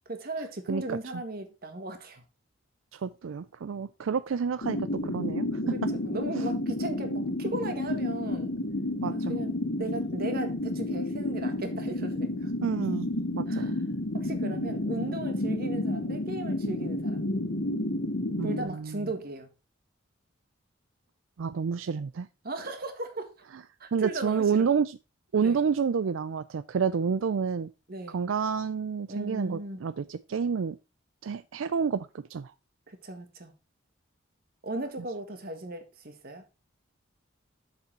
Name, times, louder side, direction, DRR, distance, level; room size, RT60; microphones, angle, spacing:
voice 1, 0.0-2.2 5.6-8.5 9.1-12.5 13.5-13.8 14.1-17.3 18.4-19.5 22.4-23.3 23.8-24.7 25.4-25.6 27.9-28.2 29.1-29.8 32.9-33.5 34.6-36.4, right 2 dB, 50° right, 1.6 m, -37 dB
voice 2, 0.7-1.0 2.9-5.7 9.0-9.3 12.6-13.8 18.4-19.1 21.4-22.3 23.9-25.0 25.3-27.7 28.1-30.8 31.2-32.5, right 6 dB, 90° right, 0.4 m, -29 dB
sound 1, 4.6-18.6, left 1 dB, 65° left, 1.1 m, -31 dB
6.9 x 6.8 x 4.4 m
head